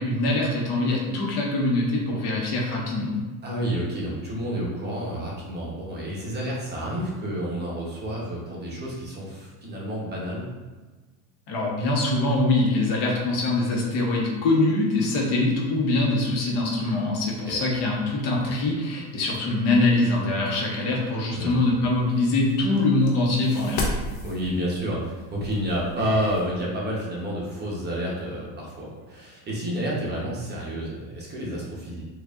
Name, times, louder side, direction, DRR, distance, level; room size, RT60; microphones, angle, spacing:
voice 1, 0.0-3.1 11.5-23.8, left 2 dB, 60° left, -2 dB, 1.1 m, -23 dB
voice 2, 3.4-10.5 17.5-17.6 21.3-21.6 24.2-32.0, equal, 20° right, -5 dB, 0.9 m, -30 dB
sound 1, 21.5-26.5, left 1 dB, 85° left, 0.9 m, -35 dB
4.6 x 2.6 x 2.4 m, 1.2 s
supercardioid pair, 120°, 45 cm